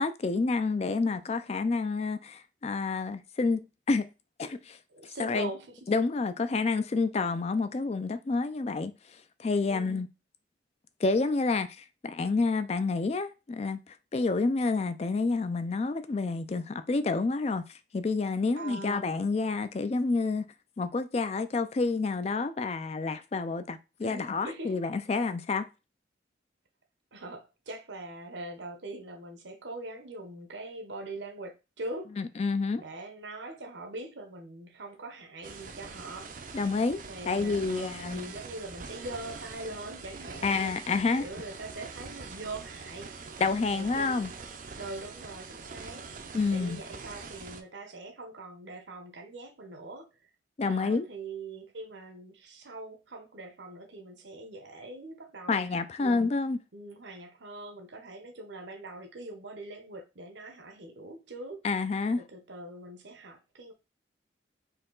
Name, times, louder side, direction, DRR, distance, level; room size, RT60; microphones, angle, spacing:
voice 1, 0.0-4.1 4.4-4.8 5.0-5.5 5.9-8.9 9.4-10.1 11.0-20.5 20.8-25.7 32.2-32.8 36.5-38.3 40.4-41.3 43.4-44.3 46.3-46.8 50.6-51.0 55.5-56.6 61.6-62.2, left 3 dB, 35° left, 0.3 m, -29 dB
voice 2, 4.9-5.9 9.7-10.0 18.6-19.1 24.0-24.7 27.1-32.1 32.7-36.4 37.1-43.4 43.7-44.4 44.8-46.2 46.5-50.3 50.6-56.2 56.7-61.7 62.2-63.7, right 2 dB, 75° right, 0.9 m, -42 dB
sound 1, 35.4-47.6, right 4 dB, 45° right, 0.5 m, -44 dB
4.3 x 2.8 x 3.8 m
head